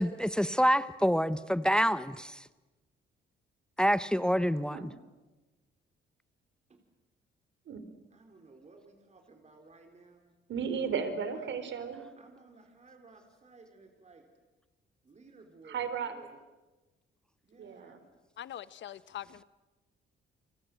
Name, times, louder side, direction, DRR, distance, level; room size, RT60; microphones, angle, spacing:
voice 1, 0.0-2.4 3.8-4.9, equal, 5° left, 14 dB, 0.9 m, -27 dB
voice 2, 8.1-10.3 11.3-11.5 12.2-14.3 15.0-16.3 17.4-18.1, right 3 dB, 35° right, 4 dB, 4.2 m, -57 dB
voice 3, 10.5-12.0 15.6-16.1 17.6-18.0, right 6 dB, 65° right, 10 dB, 4.0 m, -34 dB
voice 4, 18.4-19.4, left 11 dB, 65° left, 16 dB, 1.1 m, -43 dB
30.0 x 25.0 x 7.8 m, 1.2 s
cardioid pair, 90°, 20 cm